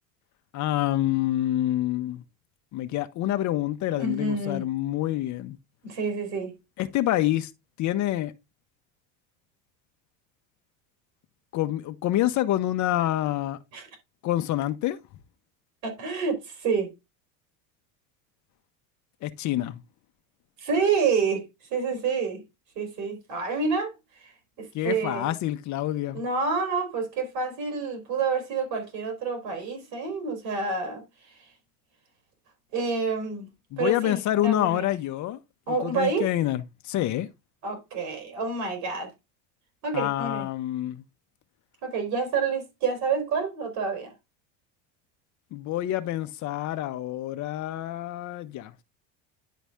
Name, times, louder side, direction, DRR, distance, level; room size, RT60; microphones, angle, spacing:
voice 1, 0.5-2.2 2.7-5.6 6.8-7.5 7.8-8.3 11.5-13.6 14.2-15.0 19.2-19.8 24.7-26.2 33.7-35.4 35.7-37.3 39.9-41.0 45.5-48.8, left 13 dB, 50° left, 0.9 m, -27 dB
voice 2, 3.9-4.7 5.8-6.5 13.7-13.9 15.8-16.9 20.6-22.4 22.8-24.3 24.6-25.4 26.1-31.3 32.7-33.5 33.8-34.9 35.7-36.3 37.6-39.1 39.8-40.5 41.8-44.1, right 4 dB, 65° right, 3.9 m, -28 dB
10.5 x 4.1 x 3.5 m
supercardioid pair, 100°, 39 cm